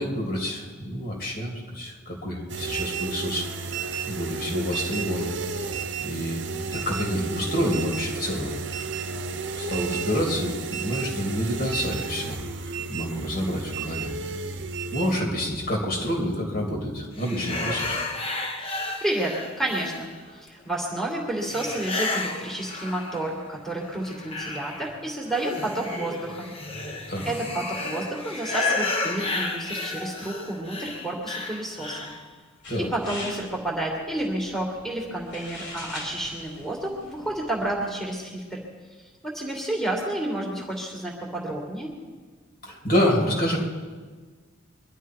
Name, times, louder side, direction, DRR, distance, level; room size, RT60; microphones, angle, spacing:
voice 1, 0.0-5.3 5.6-8.9 9.5-14.4 14.9-18.0 27.1-27.2 32.7-32.9 42.6-43.6, equal, 45° left, -1 dB, 2.9 m, -28 dB
sound 1, 2.5-15.2, right 5 dB, 55° right, 0.9 m, -32 dB
sound 2, 17.2-20.3 21.4-23.4 23.8-32.3, left 2 dB, 25° left, 1.2 m, -32 dB
voice 2, 18.6-26.5 27.3-32.1 32.8-38.6 39.2-41.9, right 1 dB, ahead, -3 dB, 2.3 m, -30 dB
sound 3, 32.6-38.1, left 1 dB, 60° left, 3.9 m, -42 dB
23.5 x 12.0 x 4.7 m, 1.4 s
head